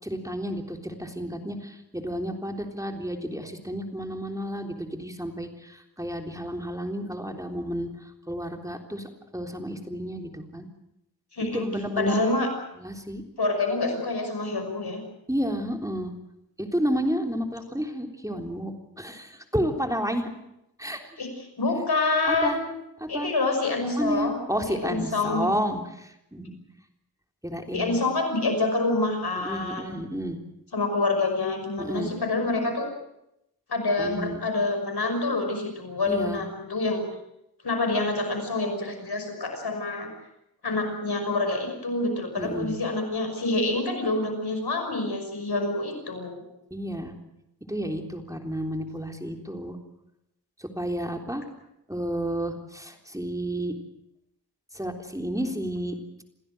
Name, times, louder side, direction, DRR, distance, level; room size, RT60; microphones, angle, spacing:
voice 1, 0.0-7.9 8.3-10.7 11.4-12.3 12.8-13.2 15.3-16.1 16.6-20.3 20.8-21.2 22.3-22.6 23.0-23.3 23.8-26.6 27.4-28.0 29.4-30.4 31.8-32.1 34.0-34.4 36.1-36.4 42.4-42.8 46.7-47.1 47.7-49.8 50.6-51.4 51.9-53.7 54.7-56.0, equal, 10° right, 3 dB, 3.6 m, -31 dB
voice 2, 11.3-11.6 12.0-12.5 13.4-15.0 21.2-22.6 23.1-24.4 24.7-25.4 27.7-30.0 30.7-32.9 33.7-37.0 37.6-40.1 40.6-46.4, left 2 dB, 90° left, 4 dB, 5.9 m, -27 dB
27.5 x 16.5 x 7.9 m, 0.85 s
wide cardioid pair, 50°, 38 cm